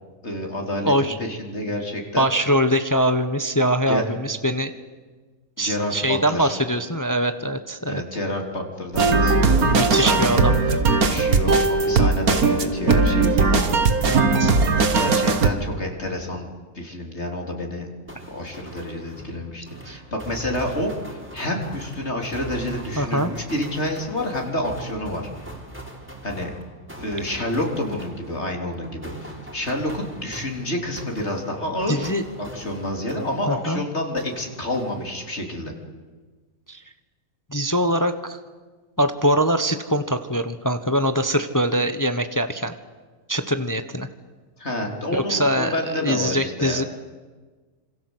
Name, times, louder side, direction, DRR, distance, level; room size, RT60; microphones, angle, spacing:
voice 1, 0.2-2.3 3.9-4.0 5.6-6.6 7.9-10.4 11.1-13.7 14.9-17.9 18.3-25.3 26.2-26.5 27.0-32.1 32.4-35.7 44.6-46.9, left 1 dB, 50° left, 2 dB, 4.0 m, -29 dB
voice 2, 0.8-1.2 2.1-4.7 5.6-8.0 9.6-10.6 14.0-14.5 19.9-20.0 23.0-23.3 31.9-32.2 33.5-33.8 36.7-36.8 37.5-38.4 39.0-42.7 43.3-44.1 45.1-46.8, equal, 15° left, 9 dB, 1.1 m, -23 dB
sound 1, 8.9-15.5, right 4 dB, 85° right, 2.2 m, -19 dB
sound 2, 18.1-33.8 34.2-35.5, right 1 dB, 10° right, 4.0 m, -41 dB
27.0 x 27.0 x 8.1 m, 1.3 s
omnidirectional pair, 1.5 m